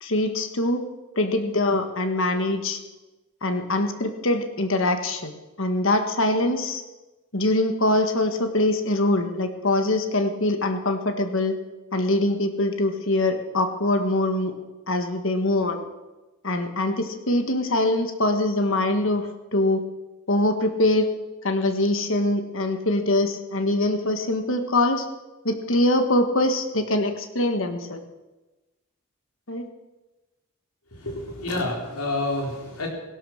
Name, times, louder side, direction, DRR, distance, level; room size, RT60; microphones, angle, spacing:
voice 1, 0.0-0.8 1.2-2.8 3.4-5.3 5.6-6.8 7.3-11.5 11.9-14.5 14.9-15.8 16.4-19.3 19.5-19.8 20.3-21.1 21.4-25.1 25.4-28.0 29.5-29.6, left 1 dB, 60° left, 7 dB, 1.5 m, -23 dB
voice 2, 30.9-32.9, left 2 dB, 85° left, 1 dB, 4.0 m, -28 dB
17.0 x 12.0 x 6.5 m, 1.1 s
head